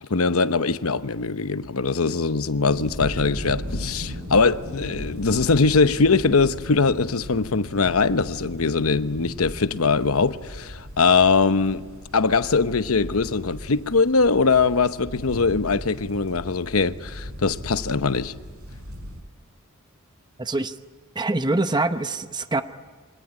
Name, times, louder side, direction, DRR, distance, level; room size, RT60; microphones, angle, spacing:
voice 1, 0.0-11.8 12.1-18.3, left 4 dB, 80° left, 0.9 m, -21 dB
sound 1, 2.6-19.2, equal, 80° right, 4.8 m, -37 dB
voice 2, 20.4-20.7 21.1-22.6, right 2 dB, 20° right, 0.8 m, -24 dB
25.0 x 18.5 x 10.0 m
head